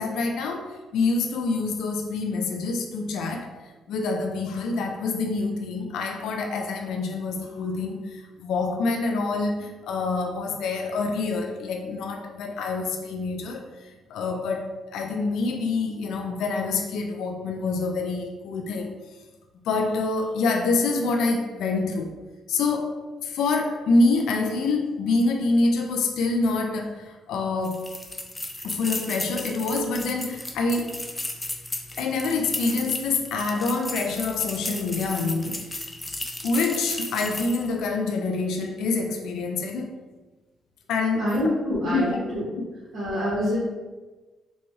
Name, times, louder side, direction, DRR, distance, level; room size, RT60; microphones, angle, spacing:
voice 1, 0.0-3.5 3.9-19.0 19.7-22.1 22.5-23.0 23.2-27.9 28.6-31.0 32.0-35.9 36.4-39.9 40.9-41.3 41.8-42.2 42.6-42.7, left 3 dB, 80° left, 3 dB, 0.3 m, -26 dB
sound 1, 27.6-37.7, left 2 dB, 15° left, 0.4 m, -34 dB
voice 2, 41.2-42.4 42.9-43.6, equal, 75° right, -9 dB, 1.2 m, -26 dB
4.0 x 2.3 x 3.1 m, 1.2 s
cardioid pair, 90°, 0 cm